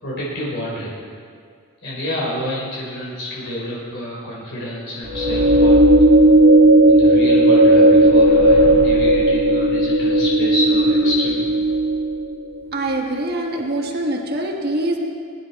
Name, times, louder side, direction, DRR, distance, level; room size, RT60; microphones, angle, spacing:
voice 1, 0.0-0.9 1.8-5.8 6.9-11.5, left 1 dB, 55° left, -6 dB, 3.7 m, -28 dB
sound 1, 5.1-12.4, right 1 dB, 75° right, 1.5 m, -14 dB
voice 2, 12.7-15.0, right 1 dB, 50° right, 0 dB, 1.4 m, -24 dB
22.5 x 10.5 x 4.2 m, 2.2 s
head